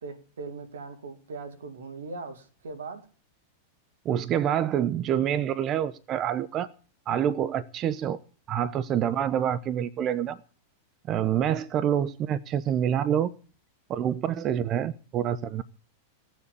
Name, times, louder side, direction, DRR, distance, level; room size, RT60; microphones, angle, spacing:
voice 1, 0.0-3.1, right 3 dB, 80° right, 2.0 m, -40 dB
voice 2, 4.0-6.7 7.1-8.2 8.5-10.4 11.1-13.3 13.9-15.6, right 9 dB, 40° right, 0.7 m, -27 dB
17.5 x 7.3 x 8.5 m
hypercardioid pair, 100°, 0 cm